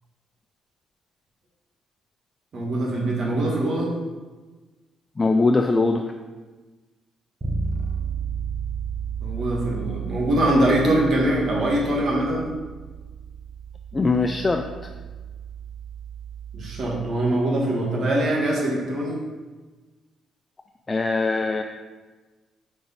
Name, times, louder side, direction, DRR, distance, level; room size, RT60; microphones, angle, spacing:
voice 1, 2.5-3.9 9.2-12.5 16.5-19.2, right 1 dB, 60° right, -2 dB, 1.5 m, -23 dB
voice 2, 5.2-6.1 13.9-14.6 20.9-21.6, left 3 dB, 25° left, 5 dB, 0.3 m, -21 dB
Bass guitar, 7.4-17.2, right 6 dB, 20° right, 0.7 m, -33 dB
5.0 x 4.6 x 4.0 m, 1.3 s
cardioid pair, 90°, 0 cm